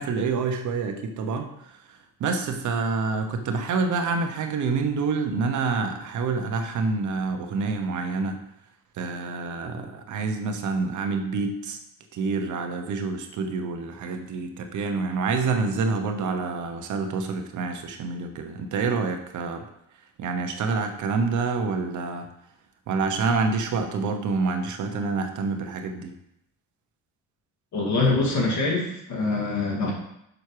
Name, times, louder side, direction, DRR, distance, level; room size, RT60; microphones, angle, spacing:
voice 1, 0.0-8.4 9.0-11.8 12.1-19.6 20.2-22.3 22.9-26.1, right 4 dB, 65° right, 5 dB, 1.0 m, -27 dB
voice 2, 27.7-29.9, left 3 dB, 55° left, -1 dB, 2.3 m, -24 dB
6.4 x 5.8 x 4.8 m, 0.78 s
cardioid pair, 155°, 33 cm